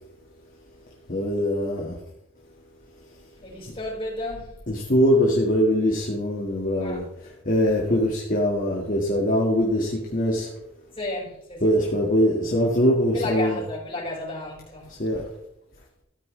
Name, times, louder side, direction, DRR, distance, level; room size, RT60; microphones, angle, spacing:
voice 1, 1.1-2.0 4.7-7.0 7.4-10.5 11.6-13.6 15.0-15.2, equal, 45° left, 1.8 m, -22 dB
voice 2, 3.4-4.6 6.8-7.0 7.8-8.0 8.7-8.8 10.9-12.0 13.1-14.9, left 2 dB, 30° left, 4.9 m, -33 dB
13.5 x 9.2 x 3.2 m
head